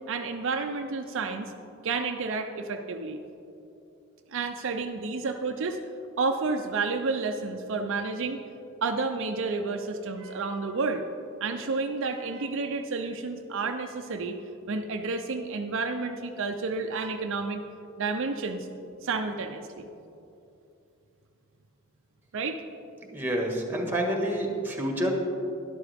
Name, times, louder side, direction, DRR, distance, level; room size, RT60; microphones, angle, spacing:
voice 1, 0.1-1.5 1.8-3.2 4.3-5.8 6.2-8.4 8.8-11.0 11.4-14.4 14.7-17.6 18.0-18.7 19.0-19.9 22.3-22.6, right 4 dB, 65° right, 5 dB, 0.5 m, -30 dB
voice 2, 23.1-25.1, right 1 dB, 10° right, 1 dB, 1.5 m, -28 dB
12.0 x 11.5 x 3.5 m, 2.8 s
head